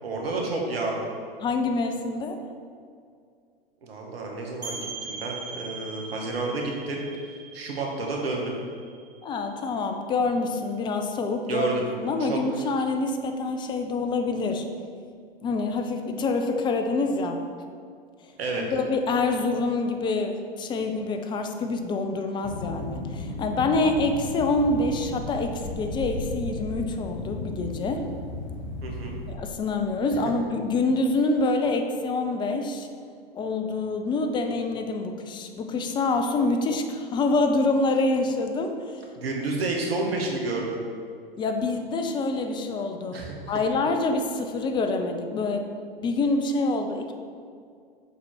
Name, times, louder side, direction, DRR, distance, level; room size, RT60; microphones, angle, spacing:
voice 1, 0.0-1.0 3.8-7.0 7.5-8.5 11.5-11.9 12.2-12.4 18.4-18.6 28.8-29.2 39.2-40.8 43.1-43.3, right 3 dB, 70° right, 0 dB, 1.5 m, -30 dB
voice 2, 1.4-2.4 9.2-11.7 12.0-14.7 15.4-17.4 18.6-28.0 29.3-32.9 33.3-39.0 41.4-45.6 46.0-47.1, left 3 dB, 15° left, 5 dB, 0.5 m, -26 dB
sound 1, 4.6-10.1, right 4 dB, 85° right, 1.0 m, -41 dB
sound 2, 22.4-29.4, left 2 dB, 40° left, 1.1 m, -35 dB
7.0 x 4.3 x 4.5 m, 2.2 s
figure-of-eight pair, 105°, 31 cm